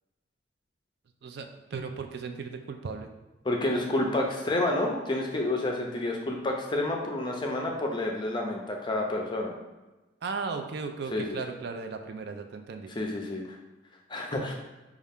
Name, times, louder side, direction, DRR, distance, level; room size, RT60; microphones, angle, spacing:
voice 1, 1.2-3.1 10.2-12.9 14.3-14.5, right 4 dB, 55° right, 5 dB, 0.3 m, -36 dB
voice 2, 3.4-9.5 11.1-11.4 13.0-13.6 14.1-14.5, left 1 dB, 25° left, 1 dB, 0.5 m, -29 dB
5.3 x 2.4 x 3.5 m, 1.1 s
head